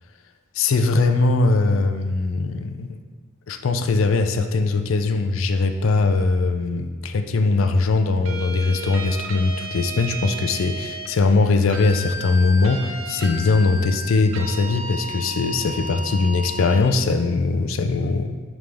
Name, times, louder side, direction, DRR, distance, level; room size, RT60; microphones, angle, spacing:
voice 1, 0.6-3.0 3.5-18.4, left 3 dB, 70° left, 8 dB, 0.4 m, -21 dB
sound 1, 8.3-11.1 11.7-16.8, right 1 dB, 70° right, 0.7 m, -33 dB
8.8 x 3.6 x 3.4 m, 1.4 s
head